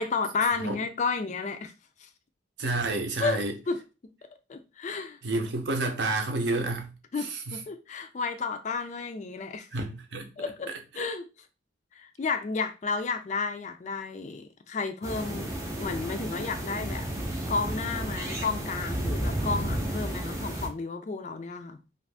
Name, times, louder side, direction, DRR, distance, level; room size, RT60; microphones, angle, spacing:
voice 1, 0.0-1.7 2.0-2.1 3.2-3.8 4.2-5.2 7.1-9.7 10.4-11.3 12.0-17.1 17.5-21.8, left 4 dB, 35° left, 0.3 m, -32 dB
voice 2, 2.6-3.5 5.2-6.9 7.2-7.6 9.7-10.3 11.0-11.1, right 2 dB, 60° right, 0.6 m, -29 dB
sound 1, 15.0-20.7, right 1 dB, 15° right, 0.5 m, -32 dB
2.5 x 2.5 x 3.3 m
head